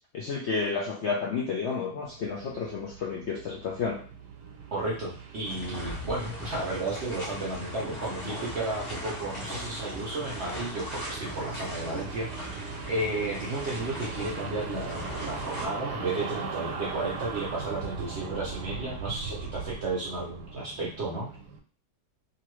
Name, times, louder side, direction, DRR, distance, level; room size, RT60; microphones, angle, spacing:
voice 1, 0.1-4.0, left 5 dB, 70° left, -2 dB, 0.6 m, -31 dB
sound 1, 2.0-21.6, right 5 dB, 85° right, 1.2 m, -40 dB
voice 2, 4.7-12.5 12.9-21.3, right 2 dB, 65° right, -3 dB, 0.7 m, -33 dB
sound 2, 5.4-15.7, left 1 dB, 45° left, 1.1 m, -39 dB
2.9 x 2.6 x 3.0 m, 0.42 s
omnidirectional pair, 1.7 m